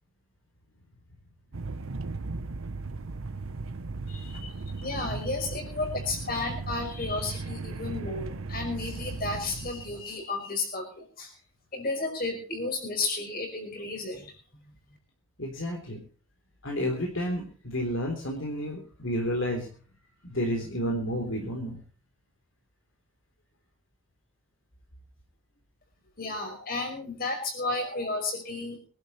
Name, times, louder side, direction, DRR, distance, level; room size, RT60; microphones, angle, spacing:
sound 1, 1.5-10.1, right 3 dB, 80° right, 0.9 m, -37 dB
voice 1, 4.3-11.3 11.7-14.3 26.2-28.8, left 3 dB, 45° left, 4 dB, 5.5 m, -33 dB
voice 2, 15.4-16.0 16.6-19.7 20.2-21.8, equal, 70° left, 1 dB, 3.6 m, -31 dB
24.0 x 12.0 x 3.2 m, 0.39 s
head